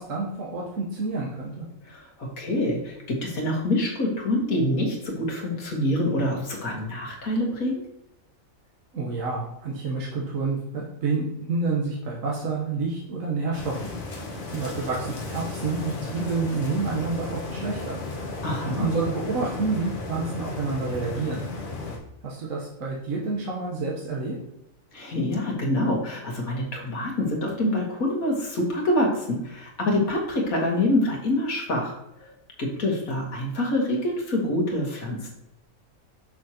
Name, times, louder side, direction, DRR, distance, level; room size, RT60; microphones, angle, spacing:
voice 1, 0.0-1.6 8.9-18.0 18.7-21.5 22.2-24.4, right 4 dB, 70° right, -4 dB, 1.5 m, -29 dB
voice 2, 1.8-7.8 18.4-18.9 24.9-31.9 32.2-32.3 32.6-35.3, left 1 dB, 85° left, -1 dB, 2.0 m, -26 dB
sound 1, 13.5-22.0, left 2 dB, 60° left, 1.6 m, -34 dB
6.2 x 6.2 x 2.9 m, 0.86 s
omnidirectional pair, 1.4 m